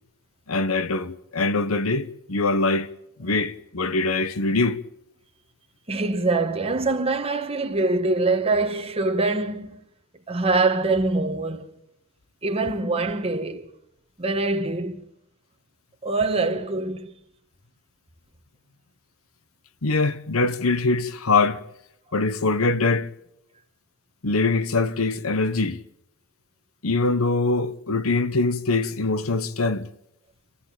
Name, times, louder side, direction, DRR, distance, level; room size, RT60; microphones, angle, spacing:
voice 1, 0.5-2.9 3.2-4.8 19.8-21.6 22.1-23.1 24.2-25.8 26.8-29.9, left 3 dB, 85° left, 1.1 m, -23 dB
voice 2, 5.9-9.8 10.3-11.7 12.4-13.7 14.2-15.0 16.0-17.1, right 3 dB, 30° right, 1.8 m, -24 dB
27.5 x 15.5 x 9.0 m
head